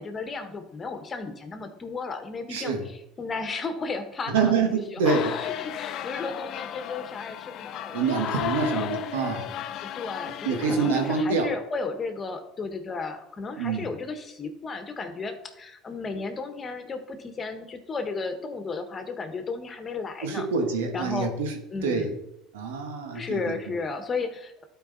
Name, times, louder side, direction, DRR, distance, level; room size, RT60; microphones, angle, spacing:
voice 1, 0.0-8.9 9.1-9.2 9.8-20.5 20.9-21.3 21.7-22.1 23.1-24.6, left 4 dB, 30° left, 7 dB, 1.4 m, -34 dB
voice 2, 2.5-2.9 4.3-5.3 7.9-9.5 10.4-11.5 13.6-13.9 20.2-21.5 21.8-22.1 22.5-23.5, right 4 dB, 85° right, 5 dB, 1.4 m, -26 dB
sound 1, 5.0-11.2, left 11 dB, 60° left, 0.6 m, -34 dB
11.5 x 4.8 x 4.0 m, 0.84 s
supercardioid pair, 85°, 0 cm